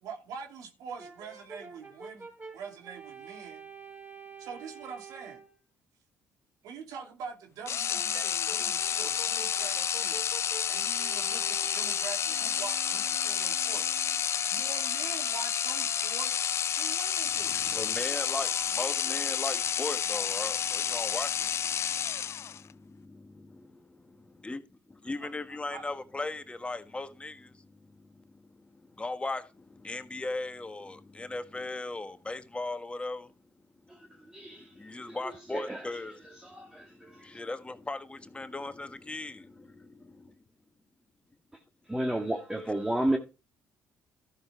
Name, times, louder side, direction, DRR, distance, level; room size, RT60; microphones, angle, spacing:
voice 1, 0.0-2.3 2.5-3.6 4.4-5.4 6.6-10.2 10.7-13.9 14.5-16.4 16.8-17.5 25.2-25.8, right 6 dB, 80° right, 2.9 m, -44 dB
Brass instrument, 1.0-5.5 7.9-14.2, right 4 dB, 35° right, 5.0 m, -48 dB
sound 1, 7.7-22.7, left 8 dB, 50° left, 0.4 m, -30 dB
voice 2, 17.5-33.3 33.9-40.3, left 2 dB, 20° left, 1.5 m, -39 dB
voice 3, 34.3-34.7 35.1-35.2 35.5-35.8 36.4-37.3 41.9-43.2, right 1 dB, 10° right, 1.6 m, -31 dB
12.5 x 6.7 x 4.5 m
supercardioid pair, 75°, 6 cm